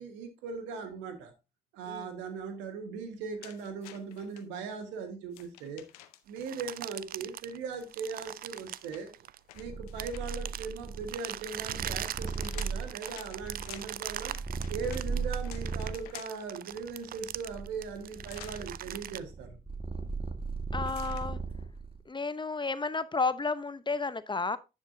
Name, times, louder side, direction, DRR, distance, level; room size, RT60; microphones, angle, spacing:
voice 1, 0.0-1.3 1.7-5.8 6.3-9.1 9.5-14.3 14.7-19.6, right 5 dB, 80° right, 1.5 m, -39 dB
sound 1, 3.4-4.4 5.3-6.4 8.2-10.5 11.9-16.5 18.2-18.7 20.8-21.3, left 13 dB, 90° left, 0.6 m, -51 dB
sound 2, 6.4-9.6 10.0-19.2, right 11 dB, 50° right, 0.4 m, -41 dB
Purr, 9.6-16.1 16.8-22.0, right 4 dB, 30° right, 1.6 m, -37 dB
voice 2, 20.7-21.4 22.1-24.6, left 4 dB, 25° left, 0.8 m, -32 dB
10.0 x 7.2 x 2.7 m
hypercardioid pair, 40°, 19 cm